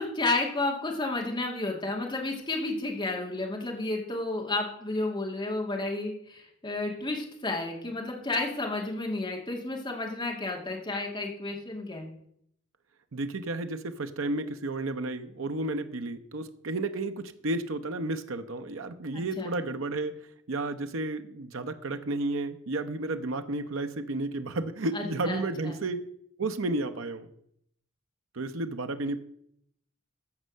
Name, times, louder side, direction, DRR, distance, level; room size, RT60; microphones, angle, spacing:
voice 1, 0.0-12.1 19.1-19.5 24.9-25.8, left 2 dB, 25° left, 0 dB, 2.5 m, -32 dB
voice 2, 13.1-20.1 20.5-26.1 26.4-27.3 28.3-29.2, right 2 dB, 75° right, 8 dB, 0.8 m, -32 dB
14.5 x 5.6 x 6.5 m, 0.71 s
head